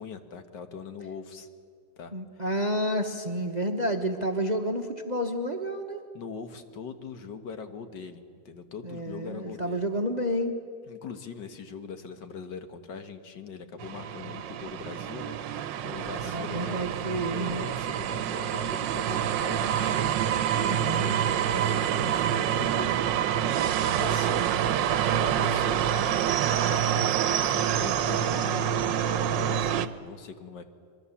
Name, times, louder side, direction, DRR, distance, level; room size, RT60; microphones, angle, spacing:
voice 1, 0.0-1.5 2.0-2.5 6.1-9.8 10.9-15.4 15.8-20.1 20.6-20.7 21.3-23.0 23.9-24.5 25.1-25.9 26.4-30.6, left 5 dB, 70° left, 7 dB, 2.0 m, -41 dB
voice 2, 2.1-6.0 8.8-10.5 16.2-17.6 20.7-21.2, equal, 30° right, 5 dB, 0.9 m, -30 dB
sound 1, 13.8-29.9, right 9 dB, 80° right, 1.5 m, -27 dB
25.5 x 22.5 x 7.2 m, 2.1 s
omnidirectional pair, 2.0 m